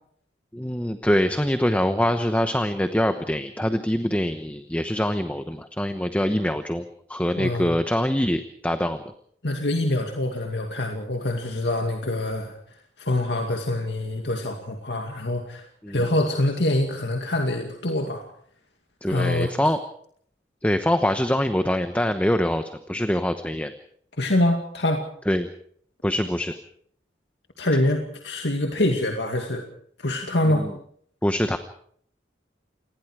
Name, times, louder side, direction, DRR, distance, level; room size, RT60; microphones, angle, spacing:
voice 1, 0.5-9.1 15.8-16.1 19.0-19.8 20.6-23.7 25.3-25.5 26.0-26.5 30.4-30.7 31.2-31.6, equal, 10° left, 8 dB, 0.9 m, -24 dB
voice 2, 7.4-7.8 9.4-12.6 13.0-18.2 19.1-19.5 24.2-25.0 27.6-29.6 30.0-30.7, left 1 dB, 75° left, 3 dB, 2.3 m, -25 dB
28.0 x 20.0 x 4.8 m, 0.63 s
head